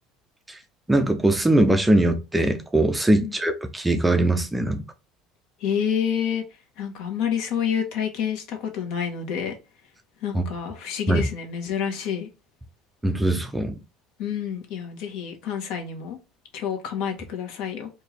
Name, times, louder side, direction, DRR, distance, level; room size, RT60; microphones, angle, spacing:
voice 1, 0.9-4.8 10.3-10.4 11.1-11.2 13.0-13.8, right 1 dB, 10° right, 0.5 m, -21 dB
voice 2, 5.6-6.4 6.8-9.6 10.2-12.3 14.2-16.2 16.5-17.9, left 8 dB, 70° left, 1.4 m, -28 dB
4.4 x 2.6 x 3.3 m
cardioid pair, 160°, 0 cm